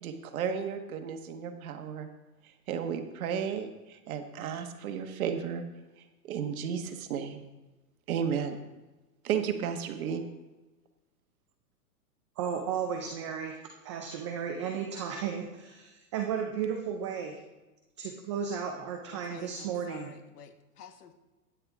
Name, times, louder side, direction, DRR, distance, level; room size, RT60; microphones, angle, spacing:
voice 1, 0.0-2.1 2.7-5.6 6.2-7.4 8.1-8.6 9.2-10.2, right 7 dB, 60° right, 6 dB, 1.4 m, -33 dB
voice 2, 12.4-17.4 18.0-20.1, right 7 dB, 20° right, 3 dB, 0.4 m, -34 dB
voice 3, 19.1-21.1, left 7 dB, 70° left, 8 dB, 1.3 m, -49 dB
10.5 x 10.0 x 3.6 m, 1.1 s
hypercardioid pair, 140°, 47 cm